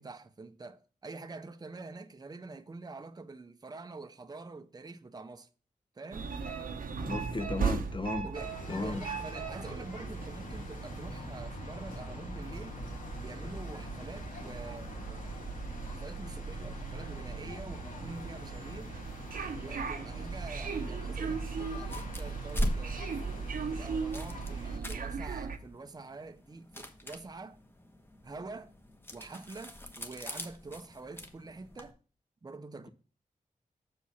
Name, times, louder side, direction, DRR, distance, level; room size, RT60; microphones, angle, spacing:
voice 1, 0.0-5.5 6.0-6.3 8.2-12.8 13.2-15.5 15.9-18.9 19.6-23.2 23.7-27.6 28.2-28.7 29.1-32.0 32.4-32.9, right 3 dB, 30° right, 0.6 m, -46 dB
sound 1, 6.1-25.6, right 5 dB, 85° right, 0.9 m, -38 dB
voice 2, 7.0-8.3 8.7-9.0, left 2 dB, 35° left, 0.9 m, -35 dB
sound 2, 8.3-24.8, left 1 dB, 75° left, 2.4 m, -45 dB
sound 3, 21.8-31.9, equal, 15° left, 1.1 m, -41 dB
6.8 x 4.7 x 5.6 m
cardioid pair, 70°, 14 cm